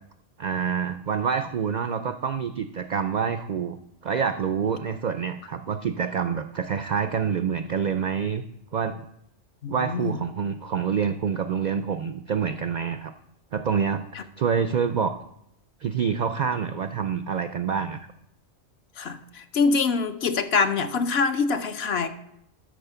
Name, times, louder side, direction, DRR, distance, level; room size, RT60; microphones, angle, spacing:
voice 1, 0.4-3.8 4.0-8.4 8.7-9.1 9.7-13.1 13.5-15.1 15.8-18.1, right 6 dB, 75° right, 10 dB, 0.4 m, -27 dB
voice 2, 9.6-10.2 19.0-22.1, left 4 dB, 60° left, 9 dB, 0.9 m, -24 dB
13.0 x 4.4 x 6.8 m, 0.76 s
omnidirectional pair, 1.3 m